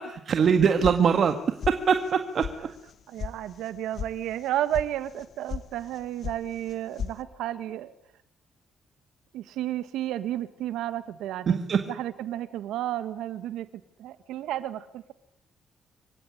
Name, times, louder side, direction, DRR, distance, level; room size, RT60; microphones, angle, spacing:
voice 1, 0.3-1.4 1.7-2.7 11.5-11.8, right 6 dB, 55° right, 7 dB, 1.9 m, -22 dB
sound 1, 0.8-1.4 1.6-2.1 2.4-2.5 2.9-3.3 3.6-4.1 4.4-4.9 5.2-5.6 5.9-6.4 6.7-7.2, left 7 dB, 55° left, 1.6 m, -34 dB
voice 2, 3.1-7.9 9.3-13.7 14.0-15.1, right 12 dB, 85° right, 13 dB, 1.6 m, -32 dB
26.0 x 16.0 x 9.7 m, 0.75 s
cardioid pair, 90°, 0 cm